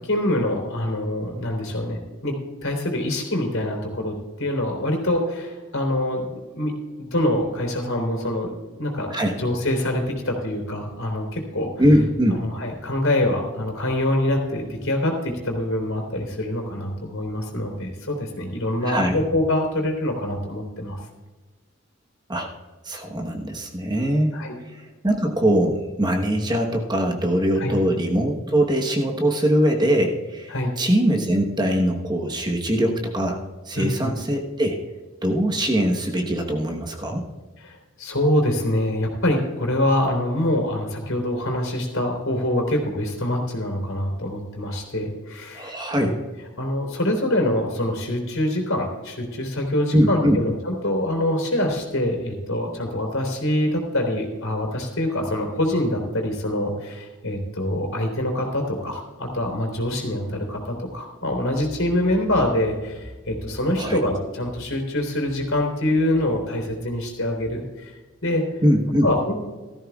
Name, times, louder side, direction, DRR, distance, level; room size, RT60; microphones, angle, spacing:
voice 1, 0.0-6.7 7.0-8.5 8.8-9.1 9.4-11.7 12.4-21.0 24.3-24.6 27.6-27.7 30.5-30.7 33.8-34.1 37.6-46.1 46.6-67.9 68.2-68.4 69.0-69.3, left 1 dB, 70° left, 2 dB, 3.5 m, -25 dB
voice 2, 11.8-12.4 18.8-19.2 22.3-22.5 22.8-24.4 25.0-33.4 33.6-34.8 35.2-37.2 45.5-46.2 49.9-50.4 63.8-64.0 68.6-69.1, equal, 20° right, 2 dB, 1.1 m, -22 dB
16.5 x 14.0 x 2.4 m, 1.3 s
head